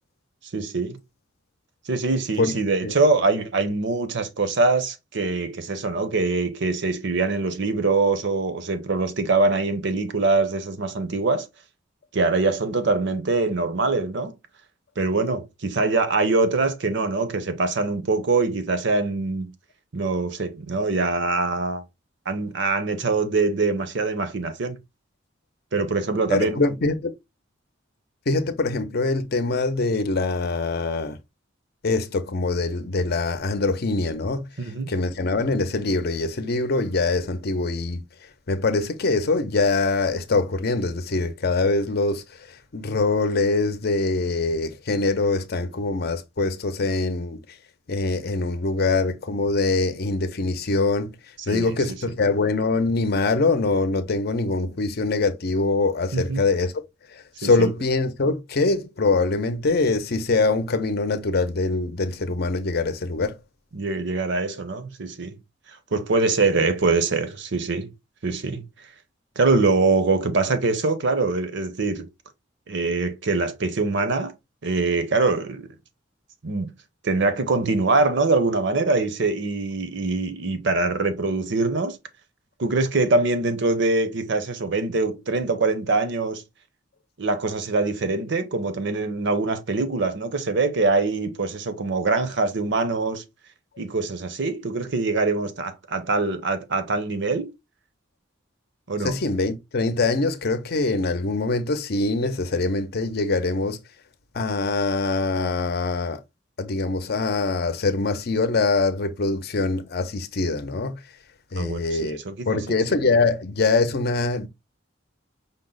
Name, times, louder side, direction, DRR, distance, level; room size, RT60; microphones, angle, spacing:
voice 1, 0.5-1.0 1.9-11.5 12.1-14.3 15.0-19.5 19.9-21.8 22.3-24.8 25.7-26.6 34.6-34.9 51.5-51.7 56.1-56.4 57.4-57.7 63.7-65.4 65.9-67.9 68.2-68.7 69.4-72.1 72.7-74.3 74.6-75.7 76.4-76.7 77.0-82.0 82.6-86.4 87.2-93.2 93.8-97.5 98.9-99.1 111.6-111.8 112.2-112.6, right 3 dB, 65° right, 0.8 m, -23 dB
voice 2, 26.3-27.1 28.3-31.2 31.8-38.0 38.5-47.4 47.9-51.1 51.5-56.8 57.1-63.4 99.0-103.8 104.3-106.2 106.6-111.0 111.5-112.2 112.5-114.5, left 3 dB, 55° left, 0.6 m, -23 dB
5.4 x 2.1 x 3.8 m
head